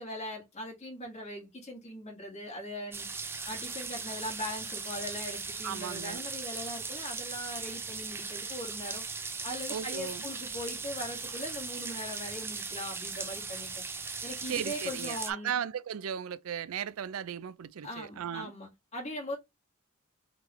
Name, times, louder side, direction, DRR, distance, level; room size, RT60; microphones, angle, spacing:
voice 1, 0.0-3.1 3.4-9.0 9.4-13.8 14.2-15.5 17.8-19.4, left 1 dB, 30° left, 1.7 m, -40 dB
sound 1, 2.9-15.3, right 4 dB, 10° right, 0.4 m, -38 dB
voice 2, 5.6-6.2 9.7-10.2 14.5-18.5, right 8 dB, 75° right, 0.4 m, -36 dB
3.7 x 3.2 x 3.0 m
head